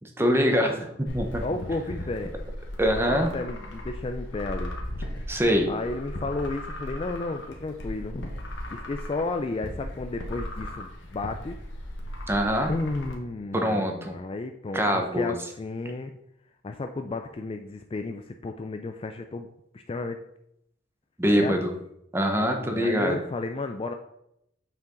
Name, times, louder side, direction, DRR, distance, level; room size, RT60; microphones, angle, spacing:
voice 1, 0.0-1.4 2.8-3.3 5.3-5.7 12.3-12.7 13.5-14.2 14.7-15.3 21.2-21.7 22.1-23.2, equal, 10° right, 4 dB, 0.8 m, -24 dB
sound 1, 1.1-13.1, left 1 dB, 65° left, 1.3 m, -37 dB
voice 2, 1.4-2.3 3.0-4.7 5.7-8.3 8.7-11.6 12.7-16.1 16.6-19.5 19.7-20.2 21.3-21.6 22.6-23.9, left 3 dB, 25° left, 6 dB, 0.3 m, -33 dB
6.9 x 5.7 x 3.8 m, 0.80 s
head